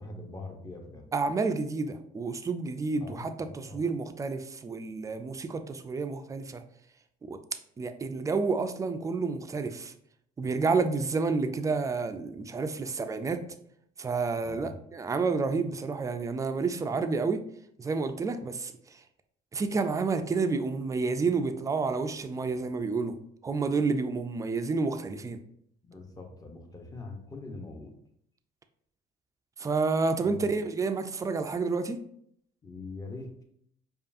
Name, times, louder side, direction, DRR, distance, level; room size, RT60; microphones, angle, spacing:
voice 1, 0.0-1.1 3.0-3.8 14.4-14.8 25.8-27.9 30.2-30.5 32.6-33.4, left 3 dB, 20° left, 2 dB, 0.8 m, -43 dB
voice 2, 1.1-6.6 7.3-7.4 7.8-9.9 10.4-13.4 14.0-17.4 17.8-19.0 19.5-23.2 23.4-25.4 29.6-32.0, right 4 dB, 20° right, 8 dB, 0.3 m, -30 dB
5.1 x 2.4 x 2.6 m, 0.69 s
cardioid pair, 110°, 17 cm